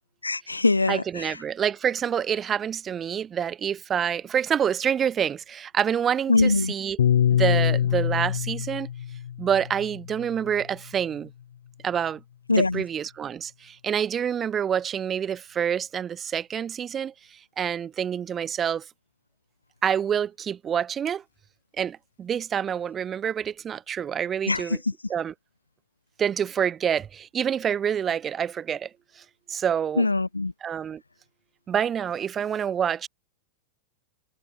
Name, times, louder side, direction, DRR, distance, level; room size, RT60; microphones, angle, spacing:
voice 1, 0.2-1.0 6.3-6.7 12.5-12.8 24.5-24.6 30.0-30.5, left 3 dB, 80° left, 0.5 m, -22 dB
voice 2, 0.9-7.0 7.4-8.9 9.4-11.3 11.8-12.2 12.5-17.1 17.6-18.8 19.8-21.2 21.8-24.8 25.1-25.3 26.2-28.9 29.2-29.3 29.5-30.1 30.6-31.0 31.7-33.1, right 8 dB, 25° right, 4.8 m, -27 dB
Piano, 7.0-11.4, left 9 dB, 65° left, 3.4 m, -25 dB
figure-of-eight pair, 90°, 0 cm